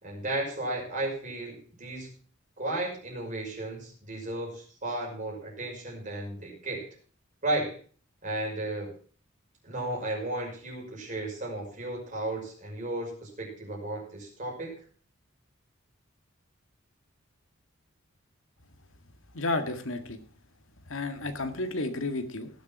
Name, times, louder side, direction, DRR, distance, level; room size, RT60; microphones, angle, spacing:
voice 1, 0.0-2.1 2.6-6.9 7.4-7.8 8.2-8.9 9.6-14.7, right 2 dB, 40° right, -1 dB, 5.7 m, -34 dB
voice 2, 19.3-20.2 20.9-22.5, left 2 dB, 80° left, 7 dB, 1.8 m, -32 dB
17.5 x 7.3 x 5.9 m, 0.42 s
head